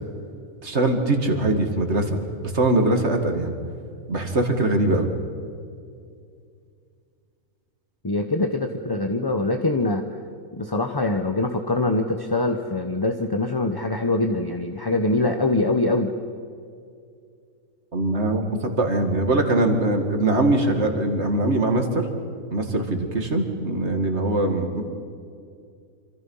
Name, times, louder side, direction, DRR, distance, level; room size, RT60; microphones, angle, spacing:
voice 1, 0.6-2.2 2.4-3.5 4.1-5.1 17.9-22.1 22.5-24.8, right 2 dB, 50° right, 5 dB, 2.4 m, -22 dB
voice 2, 8.0-10.0 10.5-16.1, left 2 dB, 20° left, 5 dB, 0.8 m, -23 dB
27.0 x 25.5 x 5.6 m, 2.3 s
omnidirectional pair, 1.6 m